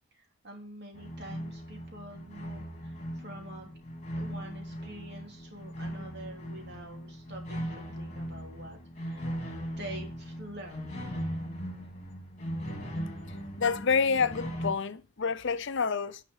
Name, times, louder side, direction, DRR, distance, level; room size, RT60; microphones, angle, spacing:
voice 1, 0.1-3.7 4.1-9.5 9.8-10.9, right 1 dB, 50° right, 3.3 m, -46 dB
sound 1, 0.9-14.7, equal, 30° left, 3.2 m, -39 dB
voice 2, 13.6-16.2, left 5 dB, 55° left, 0.6 m, -28 dB
10.5 x 5.9 x 6.4 m
head